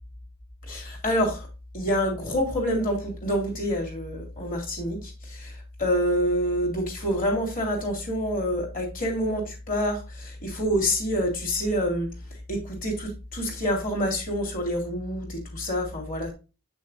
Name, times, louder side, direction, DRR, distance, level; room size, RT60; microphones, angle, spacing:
voice 1, 0.7-1.5 1.7-12.1 12.5-16.3, equal, 40° left, 2.8 m, -27 dB
8.2 x 6.2 x 2.6 m
head